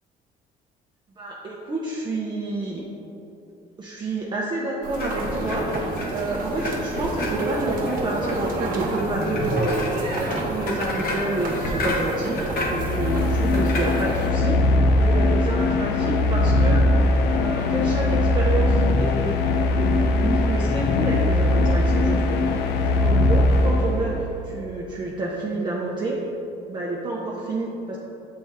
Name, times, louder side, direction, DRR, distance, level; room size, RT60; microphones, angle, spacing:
voice 1, 1.2-2.8 3.8-16.9 17.3-19.4 19.8-26.2 26.7-28.0, right 2 dB, 25° right, -4 dB, 0.7 m, -29 dB
sound 1, 4.8-14.3, right 2 dB, 55° right, 1.1 m, -30 dB
sound 2, 4.9-14.3, left 1 dB, 65° left, 1.1 m, -31 dB
sound 3, 12.5-24.3, left 2 dB, 85° left, 0.5 m, -20 dB
6.9 x 4.3 x 3.6 m, 2.9 s
cardioid pair, 110°, 17 cm